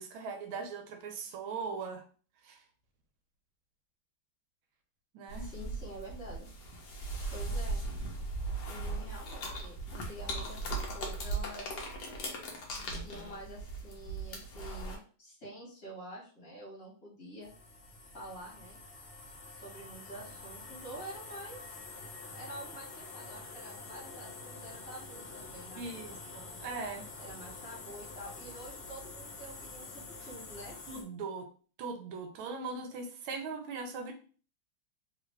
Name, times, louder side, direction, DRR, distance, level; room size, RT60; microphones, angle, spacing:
voice 1, 0.0-2.0 2.4-2.6 5.1-5.5 25.8-27.1 30.9-31.5 31.8-34.1, right 4 dB, 75° right, 5 dB, 1.4 m, -40 dB
sound 1, 5.3-15.0, right 2 dB, 60° left, 1.2 m, -38 dB
voice 2, 5.4-6.5 7.3-7.8 8.6-11.9 13.0-17.5 18.1-18.8 19.5-21.6 22.2-26.3 27.2-30.8, right 1 dB, 45° left, -5 dB, 1.7 m, -48 dB
sound 2, 17.4-31.0, left 3 dB, 85° left, 0.6 m, -47 dB
3.5 x 2.5 x 3.1 m, 0.41 s
omnidirectional pair, 2.4 m